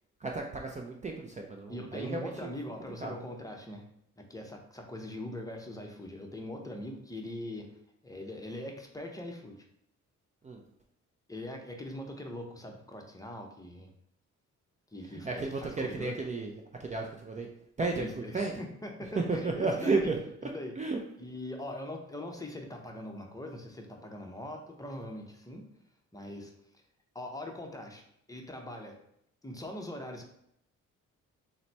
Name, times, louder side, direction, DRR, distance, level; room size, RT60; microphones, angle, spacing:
voice 1, 0.2-2.5 3.0-3.1 10.4-10.6 15.1-17.5 17.8-18.6 19.2-20.2 20.4-20.5 20.8-21.0, right 3 dB, 25° right, 1 dB, 0.5 m, -33 dB
voice 2, 1.7-3.8 4.2-7.7 8.0-9.6 11.3-13.9 14.9-16.2 18.0-20.1 20.5-20.7 21.2-25.7 26.1-26.5 27.1-28.0 28.3-29.0 29.4-30.3, left 1 dB, 10° left, 2 dB, 0.7 m, -41 dB
3.9 x 2.1 x 4.4 m, 0.73 s
cardioid pair, 90°, 30 cm